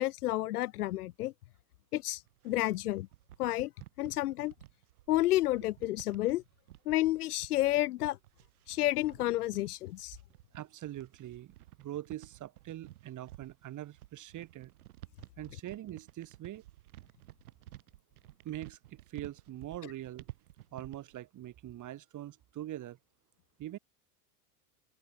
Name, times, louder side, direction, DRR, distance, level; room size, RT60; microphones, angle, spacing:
voice 1, 0.0-1.3 1.9-2.2 2.4-3.1 3.4-3.7 4.0-4.5 5.1-6.4 6.9-8.2 8.7-10.2, left 16 dB, 80° left, 0.7 m, -30 dB
sound 1, 2.1-21.2, right 15 dB, 75° right, 5.8 m, -53 dB
voice 2, 10.5-11.5 11.8-14.7 15.4-16.6 18.4-20.3 20.7-23.0 23.6-23.8, right 13 dB, 40° right, 5.7 m, -43 dB
open air
hypercardioid pair, 95°, 44 cm